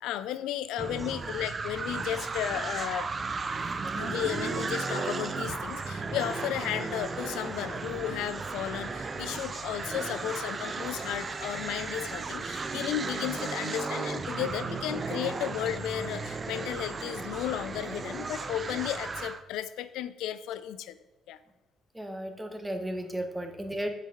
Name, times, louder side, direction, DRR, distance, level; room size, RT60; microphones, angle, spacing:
voice 1, 0.0-3.1 4.0-21.0 21.3-21.4, left 11 dB, 70° left, 14 dB, 0.4 m, -34 dB
sound 1, 0.8-19.4, right 4 dB, 35° right, 0.6 m, -35 dB
voice 2, 21.9-23.9, right 1 dB, 10° right, 6 dB, 1.3 m, -35 dB
8.2 x 6.4 x 3.6 m, 1.2 s
hypercardioid pair, 50°, 0 cm